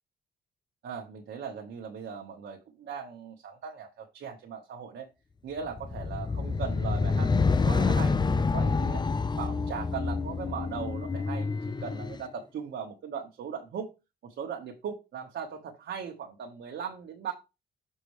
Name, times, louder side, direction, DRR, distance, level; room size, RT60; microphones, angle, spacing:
voice 1, 0.8-5.1 5.4-9.0 9.4-13.9 14.2-17.3, right 7 dB, 65° right, 0 dB, 1.5 m, -39 dB
sound 1, 5.7-12.2, left 4 dB, 20° left, 0.6 m, -27 dB
6.8 x 6.1 x 3.3 m, 0.26 s
cardioid pair, 90°, 20 cm